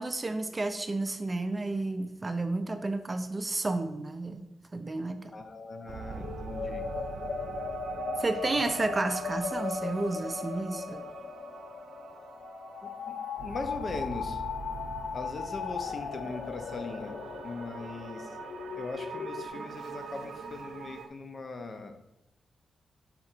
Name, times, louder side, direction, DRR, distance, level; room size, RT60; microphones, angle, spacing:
voice 1, 0.0-5.3 8.2-11.0, right 2 dB, 25° right, 8 dB, 0.4 m, -31 dB
voice 2, 5.3-6.9 8.6-8.7 12.8-14.4 15.1-17.1 17.4-18.4 18.8-22.0, left 3 dB, 35° left, 6 dB, 0.6 m, -40 dB
sound 1, 5.9-21.1, right 5 dB, 80° right, 0.6 m, -42 dB
sound 2, 6.2-19.5, left 6 dB, 85° left, 0.3 m, -38 dB
5.8 x 3.8 x 4.4 m, 0.89 s
wide cardioid pair, 130°, 0 cm